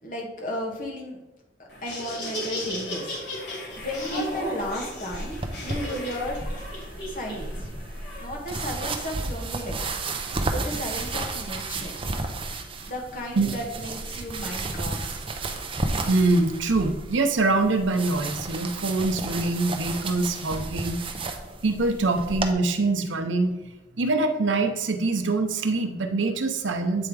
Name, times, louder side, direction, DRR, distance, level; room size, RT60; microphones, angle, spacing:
voice 1, 0.0-1.2 1.6-3.2 3.8-6.4 7.0-7.7 8.2-9.8 10.5-11.9 12.8-15.1, left 1 dB, 45° left, 0 dB, 1.4 m, -34 dB
Laughter, 1.7-8.2, equal, 60° left, 2.2 m, -35 dB
sound 1, 3.7-22.5, right 3 dB, 30° right, 0.6 m, -33 dB
voice 2, 16.1-21.0 21.6-23.6 23.9-27.1, right 3 dB, 85° right, 6 dB, 0.8 m, -24 dB
8.7 x 3.5 x 4.8 m, 1.0 s
head